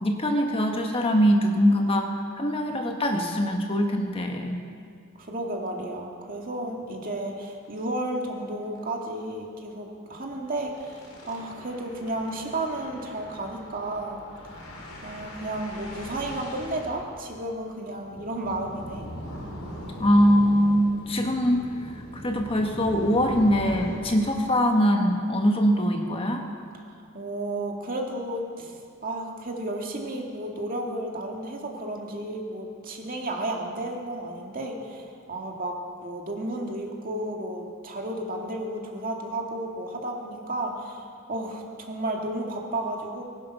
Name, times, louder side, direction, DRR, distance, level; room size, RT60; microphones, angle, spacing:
voice 1, 0.0-4.6 20.0-21.7 22.1-26.5, equal, 25° left, 3 dB, 1.2 m, -22 dB
voice 2, 5.2-14.2 15.0-19.1 27.1-43.2, right 1 dB, 40° right, 1 dB, 2.0 m, -33 dB
sound 1, 7.3-7.4 7.8-7.9 8.2-8.3 8.6-8.8 10.1-24.0, equal, 90° left, 3.6 m, -41 dB
20.0 x 11.0 x 5.9 m, 2.3 s
head